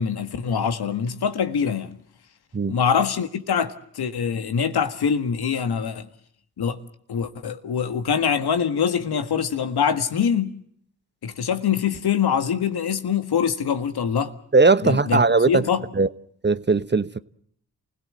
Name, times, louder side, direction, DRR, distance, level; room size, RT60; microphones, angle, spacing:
voice 1, 0.0-1.9 2.7-6.1 6.6-6.8 7.1-10.6 11.2-14.3 14.8-15.2 15.5-15.8, left 7 dB, 70° left, 1.8 m, -24 dB
voice 2, 14.5-15.6 16.0-16.1 16.4-17.2, right 3 dB, 25° right, 1.1 m, -18 dB
28.0 x 17.0 x 7.8 m
supercardioid pair, 45°, 39 cm